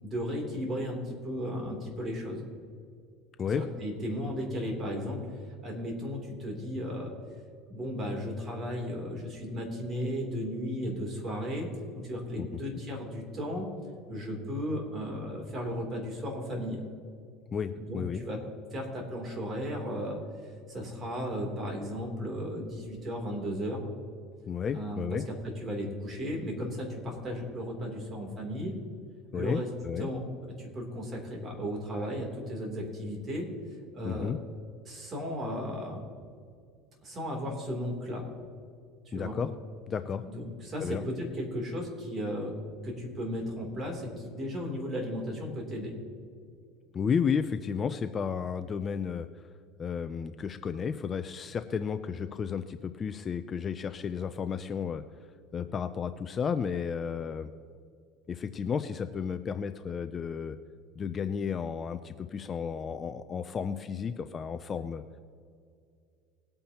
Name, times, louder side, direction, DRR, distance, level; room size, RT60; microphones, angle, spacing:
voice 1, 0.0-2.4 3.5-5.2 5.6-7.1 7.7-11.7 11.9-13.7 14.1-16.8 17.7-18.4 18.7-20.2 20.7-23.8 24.7-25.2 25.4-28.7 29.3-30.2 30.6-33.5 33.9-34.3 34.8-36.0 37.0-38.2 39.0-39.4 40.2-42.5 42.8-45.9, equal, 30° right, 0 dB, 3.1 m, -35 dB
voice 2, 17.5-18.2 24.5-25.2 29.3-30.1 34.0-34.4 39.1-39.5 39.9-40.2 40.8-41.0 46.9-49.5 49.8-55.0 55.5-57.5 58.3-60.6 61.0-65.0, left 6 dB, 25° left, 9 dB, 0.5 m, -32 dB
20.5 x 8.8 x 2.9 m, 2.3 s
supercardioid pair, 135°, 0 cm